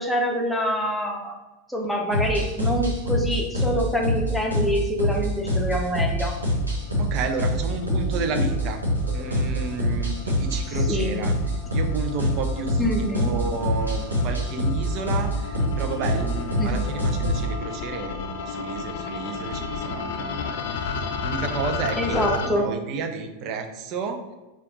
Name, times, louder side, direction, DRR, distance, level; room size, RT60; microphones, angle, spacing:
voice 1, 0.0-1.4 1.7-6.3 10.9-11.2 12.8-13.3 16.6-16.8 21.9-22.7, equal, 5° left, -1 dB, 0.8 m, -25 dB
sound 1, 2.1-17.5, equal, 85° right, 1.1 m, -25 dB
sound 2, 6.3-22.5, left 5 dB, 55° left, 0.3 m, -34 dB
voice 2, 7.0-8.8 9.1-11.3 11.7-24.2, right 4 dB, 40° right, 5 dB, 0.5 m, -32 dB
4.2 x 2.4 x 4.0 m, 1.1 s
figure-of-eight pair, 90°, 0 cm